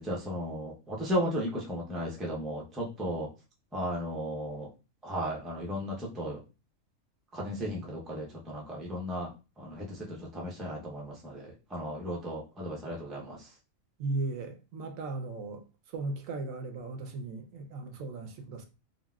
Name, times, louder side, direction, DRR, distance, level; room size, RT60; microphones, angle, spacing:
voice 1, 0.0-3.3 3.7-4.7 5.0-6.4 7.3-9.3 9.6-13.4, equal, ahead, 0.4 m, -35 dB
voice 2, 14.0-15.6 15.9-18.6, right 3 dB, 75° right, 1.0 m, -36 dB
3.9 x 2.1 x 2.3 m
omnidirectional pair, 1.4 m